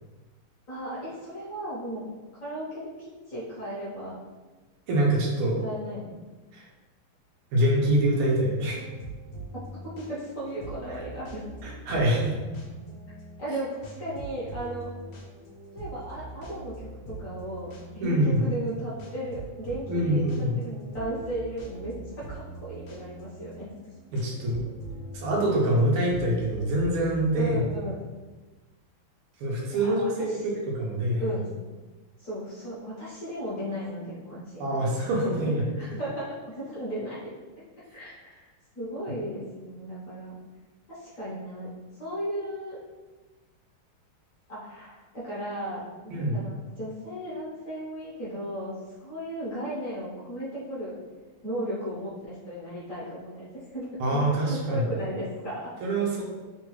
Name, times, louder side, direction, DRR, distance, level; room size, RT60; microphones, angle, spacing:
voice 1, 0.7-2.1 2.4-4.2 5.6-6.2 9.5-11.4 13.4-14.9 15.7-23.7 27.3-28.0 29.6-30.4 31.2-31.5 32.2-35.1 35.7-37.3 37.9-38.4 38.7-40.3 40.9-42.8 44.5-51.0 51.4-55.7, right 1 dB, 50° left, -9 dB, 1.1 m, -36 dB
voice 2, 4.9-5.6 6.5-6.7 7.5-8.8 11.6-12.3 18.0-18.5 19.9-20.6 24.1-24.6 25.1-27.6 29.4-31.3 34.6-35.6 46.1-46.4 54.0-54.9 55.8-56.2, right 1 dB, 85° right, -3 dB, 1.5 m, -25 dB
sound 1, 8.7-27.9, right 2 dB, 70° left, 1.2 m, -43 dB
3.7 x 2.3 x 3.0 m, 1.3 s
omnidirectional pair, 2.3 m